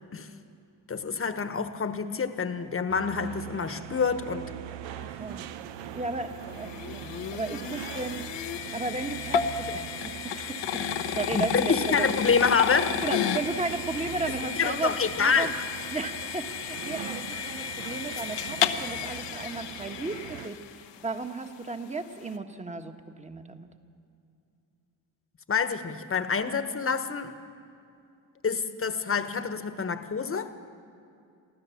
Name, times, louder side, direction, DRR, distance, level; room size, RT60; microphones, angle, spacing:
voice 1, 0.9-4.5 11.3-13.0 14.4-15.6 25.5-27.3 28.4-30.5, left 5 dB, 30° left, 10 dB, 1.4 m, -27 dB
sound 1, 2.9-20.5, right 11 dB, 80° right, 0.9 m, -42 dB
voice 2, 5.0-5.5 5.9-8.3 8.7-10.9 11.1-12.1 13.0-15.5 15.9-23.7, right 3 dB, 15° right, 7 dB, 1.5 m, -35 dB
sound 2, 5.8-21.0, left 8 dB, 75° left, 1.2 m, -33 dB
24.0 x 15.5 x 7.2 m, 2.6 s
cardioid pair, 85°, 43 cm